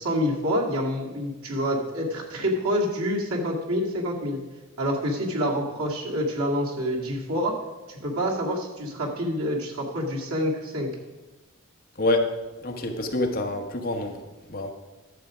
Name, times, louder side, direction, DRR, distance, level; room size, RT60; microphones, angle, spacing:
voice 1, 0.0-4.4 4.8-7.5 7.9-10.9, equal, 85° right, -1 dB, 2.1 m, -27 dB
voice 2, 12.0-12.3 12.6-14.2 14.5-14.7, left 2 dB, 45° left, 3 dB, 1.2 m, -26 dB
11.5 x 7.5 x 5.0 m, 1.2 s
head